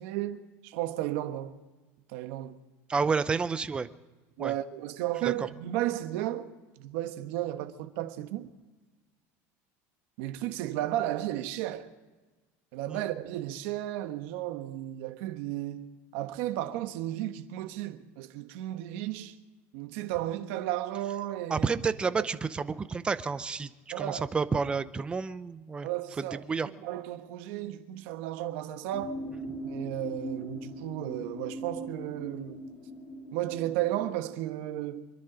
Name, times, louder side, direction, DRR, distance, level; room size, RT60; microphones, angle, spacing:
voice 1, 0.0-1.6 2.1-2.6 4.4-6.5 6.8-8.5 10.2-11.9 12.7-19.4 19.7-21.7 22.2-22.3 23.9-24.2 25.8-26.4 26.8-29.2 29.6-32.6 33.3-35.0, right 13 dB, 65° right, 1.3 m, -34 dB
voice 2, 2.9-3.9 4.4-4.5 5.2-5.3 12.9-13.0 21.5-23.7 24.0-25.9 26.5-26.7, right 5 dB, 15° right, 0.6 m, -29 dB
sound 1, 28.9-34.2, equal, 40° left, 3.8 m, -40 dB
26.5 x 10.5 x 5.1 m
cardioid pair, 165°, 7 cm